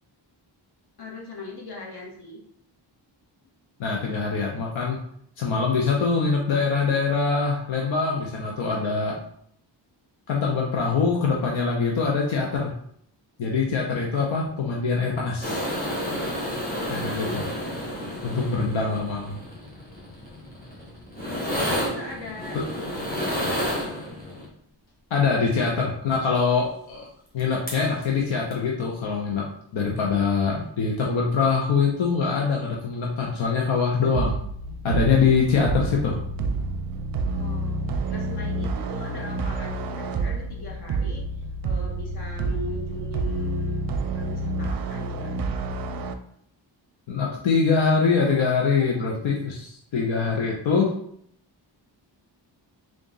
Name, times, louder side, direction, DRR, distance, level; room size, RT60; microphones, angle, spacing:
voice 1, 1.0-2.4 16.9-17.4 21.2-23.8 37.3-43.8 44.1-45.4, left 2 dB, 55° left, -2 dB, 1.3 m, -39 dB
voice 2, 3.8-5.0 5.4-9.2 10.3-12.7 13.4-15.7 16.9-17.4 18.2-19.4 22.5-22.6 25.1-27.1 27.3-29.4 29.7-34.4 34.8-36.2 47.1-50.9, left 5 dB, 85° left, -1 dB, 0.7 m, -23 dB
sound 1, 15.4-24.5 27.4-27.5 27.7-28.0 28.5-28.6, equal, 20° left, 1.5 m, -31 dB
sound 2, 34.1-46.1, right 3 dB, 50° right, 0.5 m, -29 dB
3.7 x 2.5 x 3.8 m, 0.67 s
cardioid pair, 80°, 46 cm